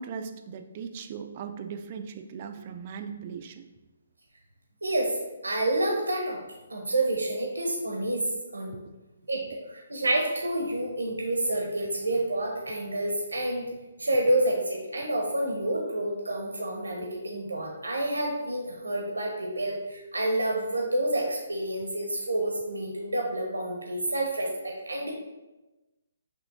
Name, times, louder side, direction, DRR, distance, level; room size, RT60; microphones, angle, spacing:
voice 1, 0.0-3.6, right 6 dB, 35° right, 7 dB, 0.3 m, -38 dB
voice 2, 4.8-6.4 6.7-8.7 9.3-9.4 9.7-13.6 14.0-25.1, right 1 dB, 80° right, 0 dB, 0.7 m, -28 dB
6.0 x 2.7 x 2.5 m, 1.1 s
figure-of-eight pair, 135°, 0 cm